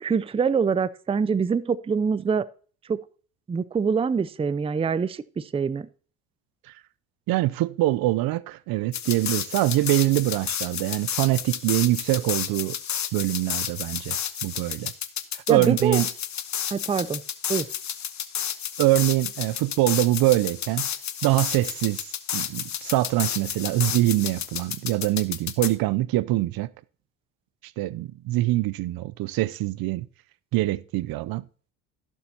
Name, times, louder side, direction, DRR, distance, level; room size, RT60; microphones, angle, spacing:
voice 1, 0.0-2.5 2.9-3.0 3.5-5.9 15.5-16.0 16.7-17.2 17.5-17.6, right 6 dB, 15° right, 0.5 m, -24 dB
voice 2, 7.3-12.8 13.1-14.2 14.4-14.9 15.3-16.1 18.8-20.9 21.2-22.1 22.3-26.7 27.8-30.1 30.5-31.4, right 17 dB, 60° right, 0.6 m, -24 dB
sound 1, 8.9-25.7, left 9 dB, 45° left, 1.2 m, -31 dB
16.0 x 7.1 x 2.8 m
supercardioid pair, 75°, 40 cm